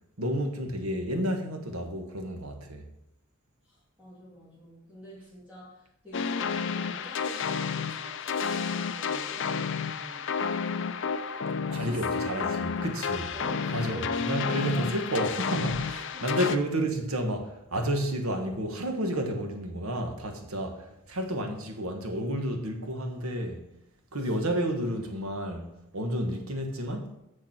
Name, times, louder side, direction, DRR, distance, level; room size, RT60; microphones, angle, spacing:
voice 1, 0.2-2.9 11.7-13.3 13.7-23.6 24.1-25.7 25.9-27.2, right 1 dB, 80° right, 1.4 m, -31 dB
voice 2, 3.6-10.3 11.7-12.4 13.3-15.3 16.1-16.2, equal, 5° right, 2.7 m, -47 dB
sound 1, 6.1-16.6, left 6 dB, 60° left, 0.5 m, -31 dB
7.1 x 6.7 x 5.9 m
head